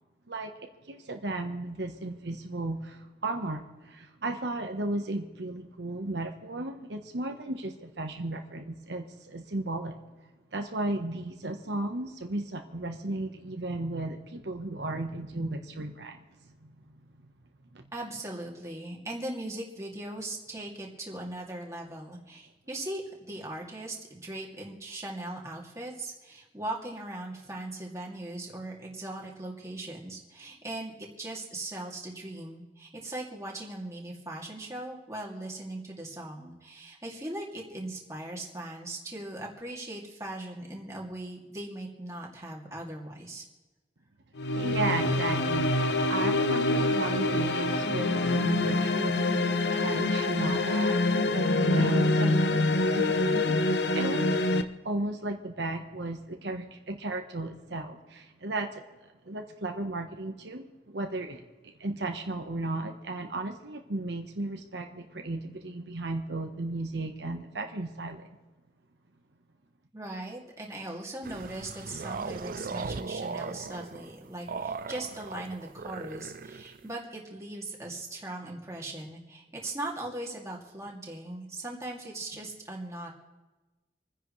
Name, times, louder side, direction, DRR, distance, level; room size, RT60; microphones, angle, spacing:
voice 1, 0.9-17.1 17.7-17.8 44.5-54.4 54.8-68.3, right 2 dB, 75° right, 4 dB, 1.2 m, -35 dB
voice 2, 17.9-23.0 23.3-43.4 69.9-83.1, right 1 dB, 15° right, -2 dB, 2.5 m, -39 dB
Mellow Burst, 44.4-54.6, left 2 dB, 75° left, 0.8 m, -26 dB
sound 1, 71.2-76.9, right 4 dB, 50° right, 0.5 m, -38 dB
27.5 x 10.0 x 3.2 m, 1.2 s
head